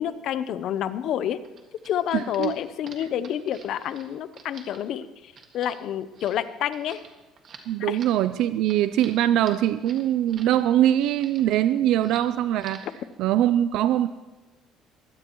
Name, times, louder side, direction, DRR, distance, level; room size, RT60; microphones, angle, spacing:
voice 1, 0.0-1.4 1.8-7.0 7.8-8.0, left 10 dB, 50° left, 14 dB, 0.6 m, -29 dB
sound 1, 1.4-10.6 10.8-11.6 11.9-12.3 12.6-13.0, right 5 dB, 40° right, 1.8 m, -48 dB
voice 2, 2.1-2.5 7.7-12.9 13.2-14.1, right 12 dB, 65° right, 13 dB, 0.4 m, -22 dB
22.5 x 16.5 x 3.1 m, 1.2 s
cardioid pair, 175°, 0 cm